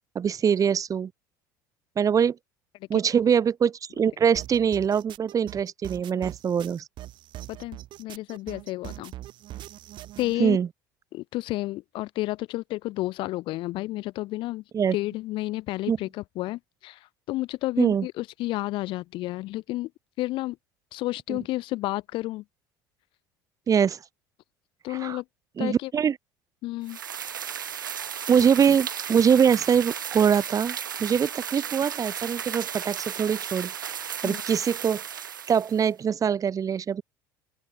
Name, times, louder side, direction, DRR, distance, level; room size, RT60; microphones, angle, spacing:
voice 1, 0.2-1.1 2.0-2.4 2.9-6.8 10.4-10.7 14.7-15.0 15.9-16.0 17.8-18.1 21.3-21.4 23.7-24.0 24.9-25.2 25.6-26.2 28.3-33.7 34.2-35.0 35.5-37.0, right 7 dB, 35° right, 3.5 m, -23 dB
sound 1, 4.3-10.3, right 14 dB, 50° right, 2.6 m, -42 dB
voice 2, 7.5-9.1 10.2-10.6 11.1-14.6 14.9-17.0 17.3-19.9 20.2-20.6 20.9-22.4 24.8-25.2 25.6-25.9 26.6-27.0 34.2-34.4, left 18 dB, 50° left, 2.2 m, -31 dB
sound 2, 26.9-35.9, right 8 dB, 80° right, 0.9 m, -35 dB
open air
figure-of-eight pair, 65°, 11 cm